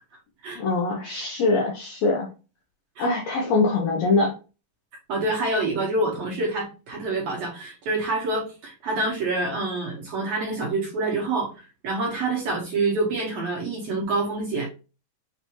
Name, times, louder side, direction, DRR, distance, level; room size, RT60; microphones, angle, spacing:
voice 1, 0.6-2.3 3.0-4.3, left 3 dB, 85° left, 0 dB, 1.5 m, -23 dB
voice 2, 5.1-14.7, right 2 dB, 65° right, -3 dB, 1.8 m, -27 dB
6.6 x 2.6 x 2.9 m, 0.33 s
omnidirectional pair, 4.1 m